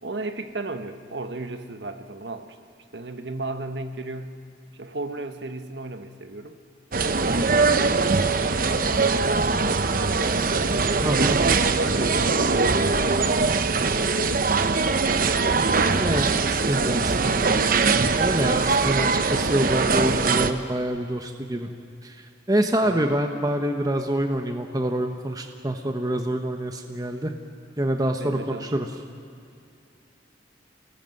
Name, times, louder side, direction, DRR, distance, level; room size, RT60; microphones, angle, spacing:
voice 1, 0.0-2.6 2.9-4.4 4.8-6.6 7.0-8.3 8.6-9.4 9.9-10.7 11.3-12.0 12.4-14.0 15.6-16.6 22.8-23.1 28.2-28.8, right 2 dB, 70° right, 8 dB, 1.4 m, -34 dB
sound 1, 6.9-20.5, right 4 dB, 50° right, 0.9 m, -22 dB
voice 2, 11.0-11.4 16.0-17.7 18.2-21.7 22.0-27.3 27.8-28.9, right 1 dB, 20° right, 4 dB, 1.0 m, -26 dB
29.0 x 19.0 x 7.8 m, 2.4 s
head